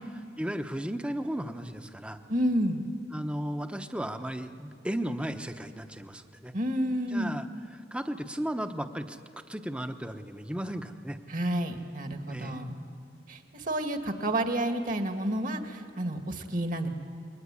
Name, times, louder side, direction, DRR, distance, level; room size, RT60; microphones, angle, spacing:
voice 1, 0.0-2.2 3.1-6.5 7.1-11.2 12.3-12.6, right 1 dB, 5° right, 7 dB, 0.9 m, -35 dB
voice 2, 2.3-2.8 6.5-7.3 11.3-12.8 13.3-16.9, right 1 dB, 50° right, 5 dB, 2.0 m, -30 dB
27.5 x 22.5 x 9.7 m, 2.6 s
head